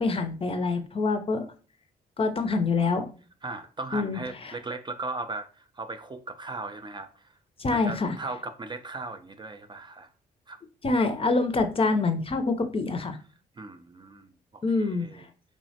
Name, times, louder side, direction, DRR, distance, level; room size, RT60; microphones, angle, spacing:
voice 1, 0.0-1.5 2.2-3.1 3.9-4.6 7.6-8.2 10.8-13.2 14.6-15.3, left 3 dB, 30° left, 7 dB, 0.5 m, -26 dB
voice 2, 3.4-7.3 7.7-10.1 10.5-10.6 13.6-15.3, right 3 dB, 25° right, 7 dB, 0.4 m, -38 dB
3.2 x 2.0 x 2.7 m, 0.38 s
supercardioid pair, 65°, 18 cm